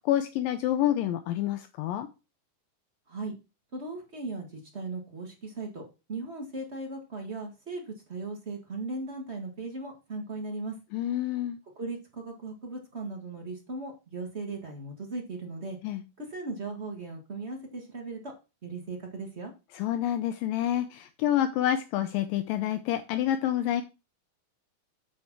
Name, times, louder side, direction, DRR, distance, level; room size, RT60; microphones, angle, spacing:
voice 1, 0.1-2.1 10.9-11.6 15.8-16.0 19.8-23.8, left 11 dB, 80° left, 8 dB, 2.4 m, -28 dB
voice 2, 3.7-5.8 6.1-10.8 11.7-15.8 16.2-18.3 18.6-19.5, right 3 dB, 40° right, 1 dB, 0.9 m, -37 dB
8.6 x 4.8 x 5.9 m, 0.29 s
omnidirectional pair, 4.0 m